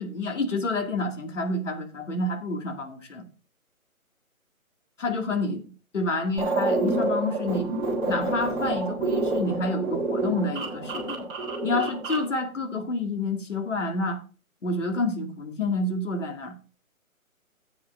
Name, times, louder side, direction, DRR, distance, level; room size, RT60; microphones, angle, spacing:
voice 1, 0.0-3.3 5.0-5.6 5.9-7.7 8.0-11.3 11.6-14.2 14.6-16.6, left 2 dB, 60° left, 2.2 m, -28 dB
sound 1, 6.4-12.3, right 2 dB, 15° right, 1.8 m, -28 dB
15.5 x 8.5 x 2.5 m
figure-of-eight pair, 145°, 42 cm